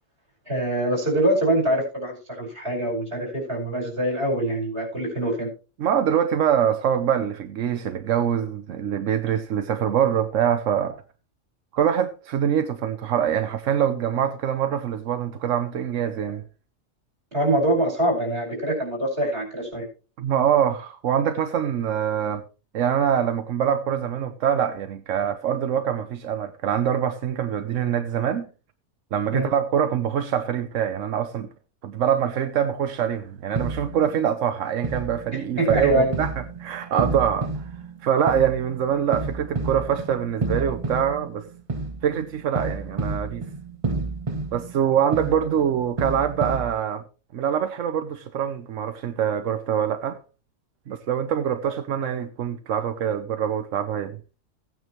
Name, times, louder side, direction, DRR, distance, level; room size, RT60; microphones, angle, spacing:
voice 1, 0.5-5.5 17.3-19.9 29.3-29.5 35.3-36.2, right 1 dB, 50° right, 5.3 m, -24 dB
voice 2, 5.8-11.0 11.7-16.4 20.2-22.4 22.7-28.5 29.1-31.5 31.8-37.6 38.0-41.4 42.0-43.4 44.5-47.0 47.3-50.2 50.9-54.2, right 9 dB, 90° right, 1.1 m, -24 dB
sound 1, 33.5-34.3 34.8-46.7, right 3 dB, 30° right, 0.9 m, -31 dB
16.0 x 9.2 x 3.0 m
omnidirectional pair, 1.3 m